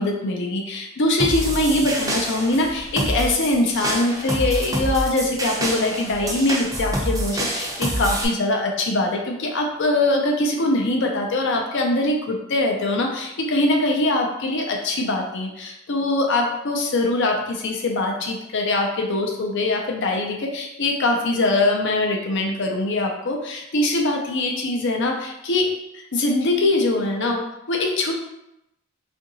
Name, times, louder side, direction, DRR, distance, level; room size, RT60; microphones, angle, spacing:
voice 1, 0.0-25.8 26.1-28.1, left 2 dB, 55° left, 2 dB, 0.6 m, -22 dB
sound 1, 1.2-8.2, right 1 dB, 15° right, 0.5 m, -27 dB
2.8 x 2.6 x 3.8 m, 0.84 s
head